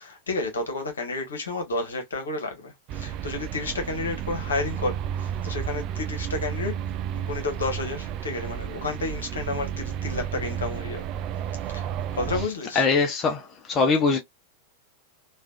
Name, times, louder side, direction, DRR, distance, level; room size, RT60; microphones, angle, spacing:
voice 1, 0.0-6.7 7.1-11.1 11.7-11.9 12.1-12.9, left 3 dB, 70° left, 1.1 m, -31 dB
sound 1, 2.9-12.5, right 9 dB, 40° right, 0.3 m, -32 dB
voice 2, 12.8-14.2, left 4 dB, 30° left, 0.6 m, -22 dB
3.2 x 2.4 x 2.3 m
figure-of-eight pair, 90°, 0 cm